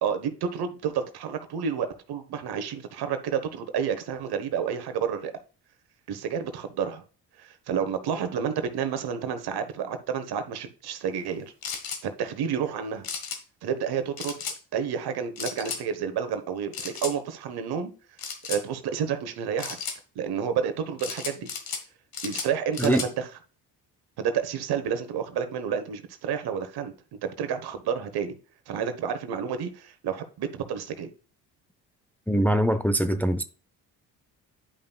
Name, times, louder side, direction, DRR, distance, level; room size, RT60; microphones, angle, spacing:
voice 1, 0.0-5.3 6.1-7.0 7.4-11.5 12.0-13.1 13.6-14.4 14.7-17.9 18.5-19.8 20.1-21.5 22.2-23.3 24.2-26.9 27.2-28.4 28.7-31.1, right 7 dB, 65° right, 1.2 m, -30 dB
sound 1, 11.6-12.0 13.0-13.4 14.2-14.6 15.4-15.8 16.7-17.1 18.2-18.6 19.6-20.0 21.0-21.8 22.1-23.1, left 6 dB, 60° left, 1.5 m, -34 dB
voice 2, 32.3-33.4, equal, 5° left, 0.6 m, -23 dB
10.0 x 5.5 x 2.3 m
supercardioid pair, 60°, 41 cm